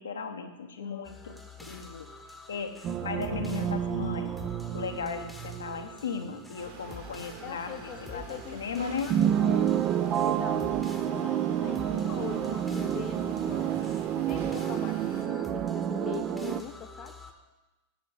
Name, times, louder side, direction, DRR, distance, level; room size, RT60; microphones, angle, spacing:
voice 1, 0.0-2.1 2.5-4.3 4.7-9.1, left 5 dB, 70° left, 6 dB, 0.9 m, -36 dB
voice 2, 0.8-1.2 7.4-10.7 11.1-17.2, left 9 dB, 35° left, 6 dB, 0.6 m, -43 dB
sound 1, 1.0-17.3, left 2 dB, 5° left, 1.0 m, -47 dB
sound 2, 2.8-6.1 6.5-6.6 9.1-16.6, right 10 dB, 35° right, 0.5 m, -29 dB
sound 3, 6.6-15.2, right 4 dB, 50° right, 1.8 m, -46 dB
7.3 x 7.0 x 7.9 m, 1.1 s
figure-of-eight pair, 90°, 0 cm